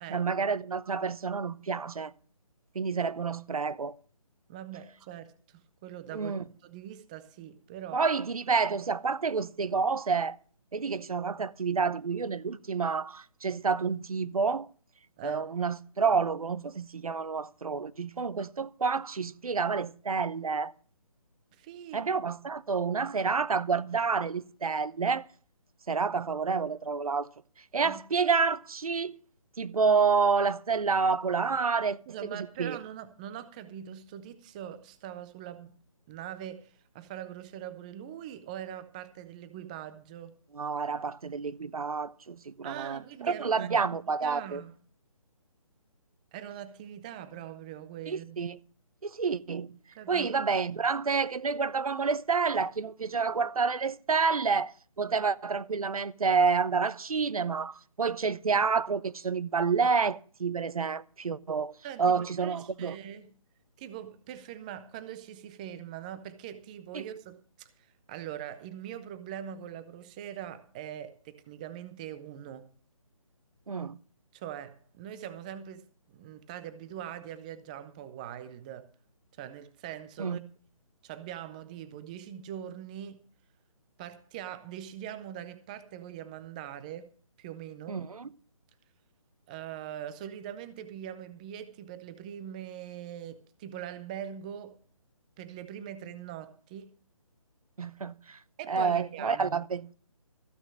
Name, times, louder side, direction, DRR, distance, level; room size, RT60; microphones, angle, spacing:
voice 1, 0.1-2.1 2.7-3.9 6.1-6.4 7.9-10.4 10.7-14.7 15.2-20.7 21.9-25.3 25.9-27.3 27.7-29.2 29.6-32.0 32.3-32.8 40.5-44.6 48.1-48.6 49.0-49.8 50.1-61.7 62.0-63.0 66.9-67.0 73.7-74.0 80.2-80.4 87.9-88.3 97.8-98.4 98.7-99.9, right 5 dB, 85° right, 0.8 m, -29 dB
voice 2, 4.5-8.0 15.2-15.5 21.5-22.1 27.8-28.0 32.1-35.8 36.1-40.3 42.6-44.8 46.3-48.6 49.9-50.3 61.8-63.3 63.8-72.7 74.3-75.8 76.1-78.9 79.4-80.4 81.0-83.2 84.0-87.1 87.4-88.0 89.5-94.8 95.4-96.9 98.6-99.6, right 10 dB, 15° right, 0.5 m, -42 dB
14.5 x 6.3 x 7.3 m
hypercardioid pair, 155°, 18 cm